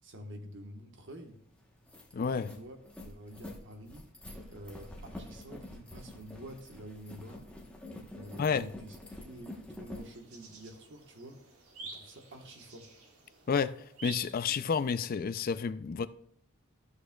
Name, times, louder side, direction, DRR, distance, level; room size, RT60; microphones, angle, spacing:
voice 1, 0.0-1.4 2.5-2.8 3.0-4.1 4.5-7.5 8.1-9.0 9.2-11.4 11.8-12.9, equal, 55° right, 1.2 m, -48 dB
sound 1, 1.3-1.4 1.7-10.1, left 1 dB, 5° left, 1.0 m, -47 dB
voice 2, 2.1-2.5 8.4-8.6 13.5-13.7 14.0-16.1, left 6 dB, 40° left, 0.4 m, -30 dB
sound 2, 10.0-15.0, right 3 dB, 80° right, 1.7 m, -49 dB
13.5 x 6.5 x 2.3 m
head